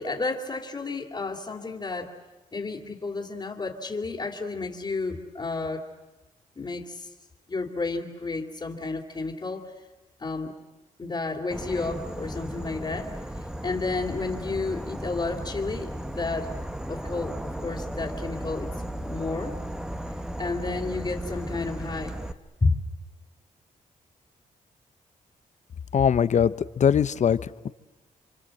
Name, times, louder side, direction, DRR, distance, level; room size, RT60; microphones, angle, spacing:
voice 1, 0.0-2.1 2.5-5.8 6.6-7.1 7.5-9.8 10.2-10.5 11.0-13.1 13.6-16.5 16.9-18.7 19.0-19.6 20.4-22.2 22.6-22.8, left 3 dB, 30° left, -4 dB, 2.9 m, -31 dB
Insect / Frog, 11.5-22.3, right 1 dB, 5° right, 1.3 m, -35 dB
voice 2, 25.9-27.4, left 8 dB, 55° left, 16 dB, 0.8 m, -21 dB
28.5 x 25.0 x 7.7 m, 1.1 s
cardioid pair, 80°, 15 cm